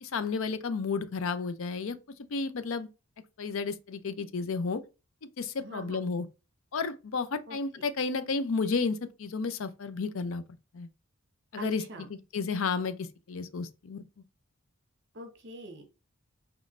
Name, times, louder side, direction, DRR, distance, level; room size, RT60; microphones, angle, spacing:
voice 1, 0.0-2.0 2.3-2.9 3.4-4.8 5.4-6.3 6.7-10.4 10.7-10.9 11.5-14.0, left 4 dB, 65° left, 0.5 m, -32 dB
voice 2, 5.6-6.0 7.5-7.8 11.6-12.1 15.1-15.8, right 2 dB, 50° right, 1.0 m, -44 dB
5.1 x 3.1 x 2.5 m
head